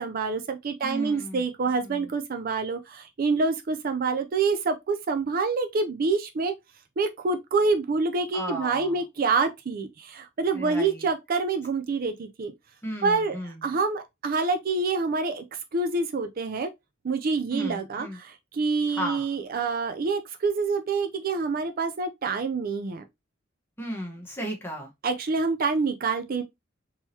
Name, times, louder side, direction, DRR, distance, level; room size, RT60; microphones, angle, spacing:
voice 1, 0.0-6.5 7.0-12.5 13.0-15.4 15.7-16.7 17.0-23.0 25.0-26.4, right 4 dB, 50° right, 0.4 m, -27 dB
voice 2, 0.8-2.1 8.3-9.0 10.5-11.1 12.8-13.8 17.5-18.2 18.9-19.3 23.8-24.9, equal, 10° left, 1.1 m, -35 dB
3.7 x 3.0 x 2.7 m
head